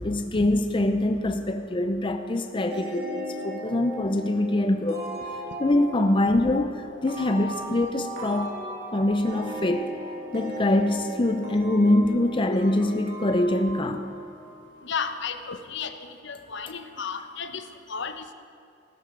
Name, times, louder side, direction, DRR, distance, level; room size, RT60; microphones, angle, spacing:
voice 1, 0.0-5.0 5.6-8.6 8.9-9.9 10.3-14.1, left 1 dB, 25° left, 6 dB, 0.6 m, -24 dB
sound 1, 2.7-15.1, equal, 60° right, 2.9 m, -37 dB
voice 2, 14.8-18.3, left 6 dB, 65° left, 9 dB, 0.8 m, -34 dB
16.0 x 13.0 x 5.2 m, 2.4 s
head